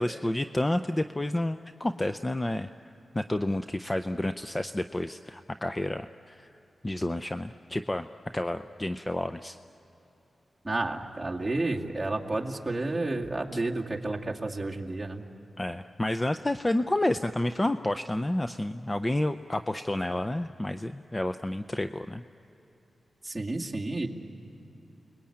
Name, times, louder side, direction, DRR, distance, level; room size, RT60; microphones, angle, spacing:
voice 1, 0.0-2.7 3.1-6.5 6.8-8.1 8.3-9.6 15.6-22.2, left 1 dB, 20° left, 9 dB, 0.5 m, -30 dB
voice 2, 10.6-15.2 23.2-24.1, right 2 dB, 15° right, -2 dB, 2.4 m, -31 dB
30.0 x 21.0 x 8.7 m, 3.0 s
wide cardioid pair, 85°, 0 cm